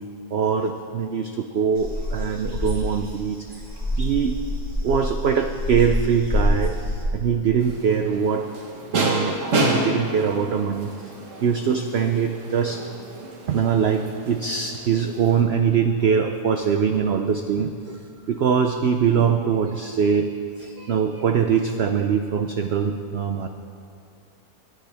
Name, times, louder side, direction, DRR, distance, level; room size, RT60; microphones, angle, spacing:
voice 1, 0.3-3.4 4.0-4.4 4.8-6.7 7.1-8.4 8.9-9.4 9.6-10.9 11.4-12.8 13.5-17.7 18.3-20.3 20.6-23.5, right 7 dB, 90° right, 6 dB, 0.5 m, -22 dB
sound 1, 1.8-7.0, left 1 dB, 15° right, 2.3 m, -26 dB
sound 2, 7.6-15.4, right 2 dB, 50° right, 1.6 m, -29 dB
20.5 x 9.7 x 3.4 m, 2.4 s
omnidirectional pair, 1.7 m